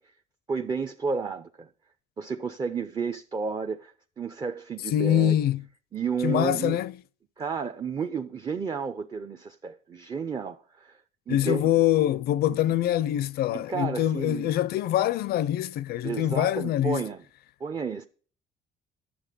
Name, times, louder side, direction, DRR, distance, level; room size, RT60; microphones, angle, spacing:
voice 1, 0.5-1.7 2.2-5.3 5.9-6.8 7.4-11.0 11.3-11.8 12.5-12.8 13.5-14.5 16.0-17.2 17.6-18.1, right 5 dB, 25° right, 0.6 m, -32 dB
voice 2, 4.9-5.6 6.2-6.9 11.3-17.0, left 12 dB, 65° left, 0.5 m, -24 dB
10.5 x 7.4 x 5.2 m
cardioid pair, 110°, 17 cm